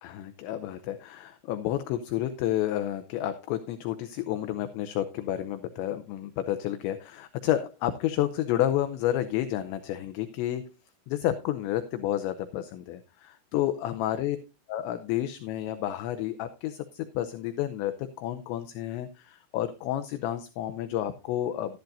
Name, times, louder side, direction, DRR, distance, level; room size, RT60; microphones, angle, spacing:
voice 1, 0.0-10.7 11.1-14.4 14.7-21.8, left 12 dB, 80° left, 9 dB, 2.7 m, -30 dB
13.0 x 11.5 x 2.6 m, 0.26 s
omnidirectional pair, 5.6 m